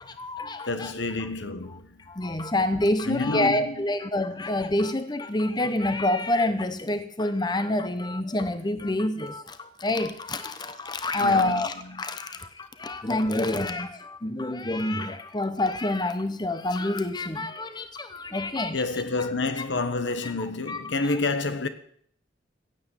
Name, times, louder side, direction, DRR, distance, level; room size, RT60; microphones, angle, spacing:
voice 1, 0.0-0.9 2.1-18.8 19.6-19.7 20.7-20.8, left 1 dB, 25° left, 0.8 m, -27 dB
voice 2, 0.6-2.1 3.0-3.9 11.2-12.0 18.7-21.7, left 3 dB, 75° left, 1.2 m, -29 dB
16.0 x 8.8 x 7.2 m
head